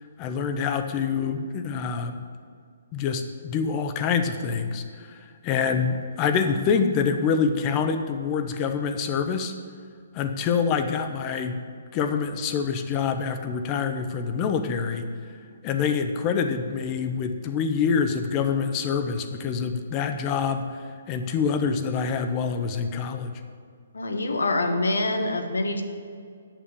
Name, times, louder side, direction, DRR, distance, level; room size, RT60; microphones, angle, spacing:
voice 1, 0.2-2.2 2.9-9.5 10.1-11.6 11.9-15.1 15.6-23.3, left 6 dB, 30° left, 8 dB, 0.9 m, -26 dB
voice 2, 23.9-25.8, left 2 dB, 85° left, 6 dB, 1.2 m, -25 dB
8.9 x 6.9 x 6.9 m, 2.2 s
hypercardioid pair, 145°, 0 cm